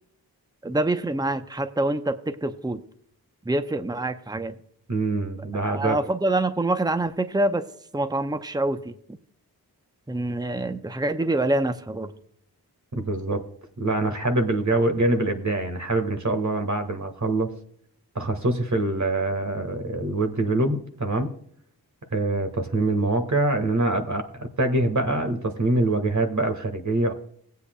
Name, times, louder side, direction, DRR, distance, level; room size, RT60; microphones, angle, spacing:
voice 1, 0.6-2.8 3.5-4.6 5.5-7.7 7.9-8.9 10.1-12.1, right 2 dB, 10° right, 9 dB, 0.8 m, -26 dB
voice 2, 4.9-6.0 13.0-13.4 13.8-17.5 18.2-21.3 22.1-27.1, right 2 dB, 50° right, 6 dB, 1.7 m, -24 dB
18.0 x 8.3 x 2.3 m, 0.66 s
cardioid pair, 45°, 38 cm